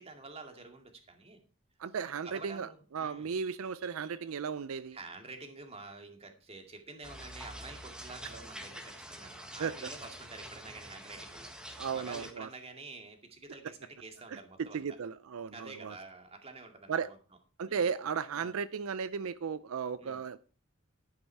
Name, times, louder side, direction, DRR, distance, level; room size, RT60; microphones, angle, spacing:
voice 1, 0.0-1.4 2.2-3.3 4.9-14.8 15.5-17.2 17.7-17.9 18.4-18.5 20.0-20.2, right 3 dB, 30° right, 2.3 m, -49 dB
voice 2, 1.8-5.0 8.3-8.4 9.6-9.7 11.8-12.5 14.3-16.0 16.9-17.1 17.6-20.4, right 6 dB, 75° right, 0.5 m, -35 dB
sound 1, 7.0-12.3, equal, 5° right, 1.5 m, -46 dB
11.5 x 9.5 x 4.6 m
head